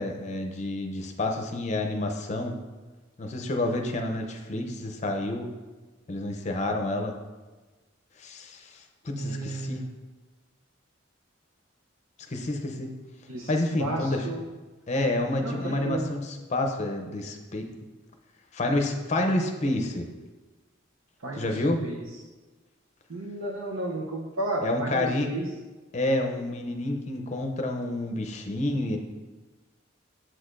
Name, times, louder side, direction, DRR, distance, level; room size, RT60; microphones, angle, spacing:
voice 1, 0.0-2.6 3.2-5.5 6.1-7.1 8.2-9.8 12.3-12.9 13.5-14.3 14.9-17.6 18.5-20.1 21.3-21.8 24.6-25.3 25.9-29.0, left 1 dB, 35° left, 3 dB, 0.6 m, -29 dB
voice 2, 9.1-9.8 13.3-13.5 13.8-14.4 15.4-16.1 21.2-21.5 21.8-22.0 23.1-25.5, right 2 dB, 80° right, -1 dB, 0.7 m, -32 dB
7.6 x 6.4 x 2.5 m, 1.3 s
head